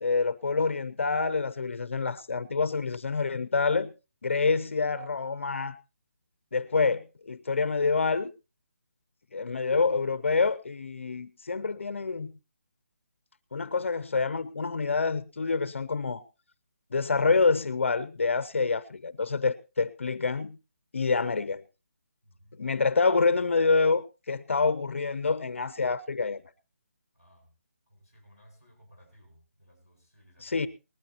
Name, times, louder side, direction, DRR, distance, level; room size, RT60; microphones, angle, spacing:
voice 1, 0.0-3.9 4.2-5.7 6.5-8.3 9.3-12.3 13.5-16.2 16.9-20.6 20.9-21.6 22.6-26.4 30.4-30.7, left 4 dB, 55° left, 0.6 m, -27 dB
voice 2, 22.2-22.6 27.1-27.5 27.9-30.7, equal, 25° right, 7.0 m, -58 dB
19.5 x 13.5 x 2.9 m
hypercardioid pair, 175°, 8 cm